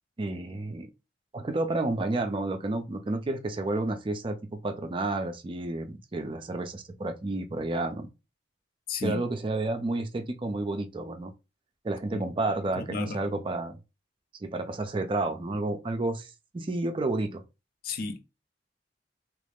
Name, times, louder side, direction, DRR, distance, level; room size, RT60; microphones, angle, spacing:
voice 1, 0.2-0.9 1.3-8.1 9.0-11.3 11.8-13.8 14.4-17.4, right 2 dB, 30° right, 0.4 m, -31 dB
voice 2, 8.9-9.2 12.1-12.3 12.6-13.5 17.8-18.2, left 4 dB, 55° left, 0.5 m, -34 dB
3.0 x 2.5 x 3.4 m
head